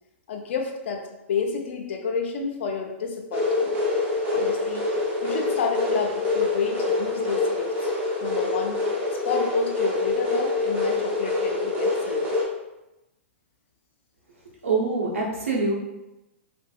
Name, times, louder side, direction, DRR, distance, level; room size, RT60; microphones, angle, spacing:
voice 1, 0.3-1.0 1.3-3.7 4.3-7.9 8.2-8.8 9.1-12.4, left 5 dB, 65° left, 3 dB, 0.6 m, -30 dB
sound 1, 3.3-12.4, left 3 dB, 20° right, 0.8 m, -25 dB
voice 2, 14.6-15.7, right 3 dB, 90° right, -2 dB, 0.9 m, -24 dB
3.3 x 2.5 x 2.4 m, 0.96 s
hypercardioid pair, 135°, 7 cm